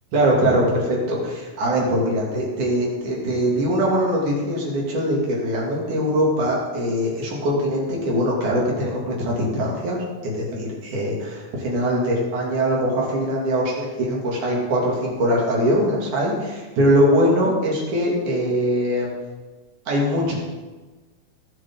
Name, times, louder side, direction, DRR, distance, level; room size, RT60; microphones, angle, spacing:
voice 1, 0.1-19.1 19.9-20.4, equal, 85° right, -3 dB, 4.3 m, -22 dB
20.5 x 8.0 x 3.9 m, 1.3 s
omnidirectional pair, 3.4 m